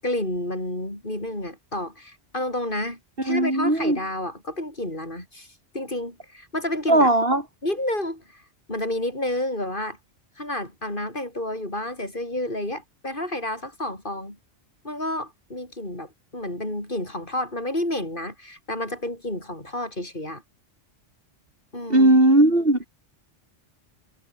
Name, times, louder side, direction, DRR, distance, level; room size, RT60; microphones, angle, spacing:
voice 1, 0.0-5.5 5.7-7.1 7.6-8.4 8.7-10.0 10.4-14.4 14.8-20.4 21.7-22.2, left 1 dB, 50° left, 8.2 m, -30 dB
voice 2, 3.3-4.0 6.9-7.4 21.9-22.8, right 1 dB, 55° right, 6.2 m, -18 dB
omnidirectional pair, 1.2 m